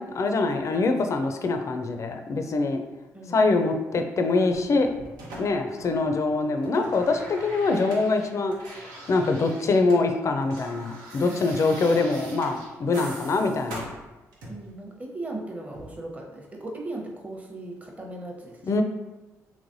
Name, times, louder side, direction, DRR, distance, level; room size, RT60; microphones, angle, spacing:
voice 1, 0.0-2.8 3.3-4.9 5.4-13.8 18.7-18.8, left 3 dB, 50° left, 5 dB, 0.4 m, -24 dB
sound 1, 4.5-6.2 6.5-10.0 10.3-14.7 15.7-15.9, right 1 dB, 85° right, 0.7 m, -42 dB
voice 2, 11.3-11.6 14.5-18.8, right 2 dB, 20° right, -1 dB, 0.8 m, -38 dB
3.2 x 3.1 x 2.6 m, 1.1 s
supercardioid pair, 55°, 7 cm